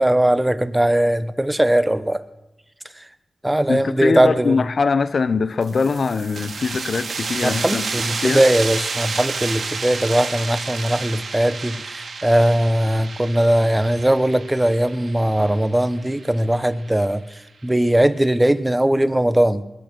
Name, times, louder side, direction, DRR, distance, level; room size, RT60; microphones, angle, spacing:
voice 1, 0.0-2.2 3.0-3.1 3.4-4.6 7.4-17.2 17.6-19.6, right 1 dB, 15° right, 1.1 m, -19 dB
voice 2, 3.7-8.4, left 4 dB, 70° left, 0.8 m, -22 dB
sound 1, 5.6-16.9, right 4 dB, 75° right, 2.2 m, -30 dB
21.5 x 9.1 x 6.1 m
cardioid pair, 50°, 0 cm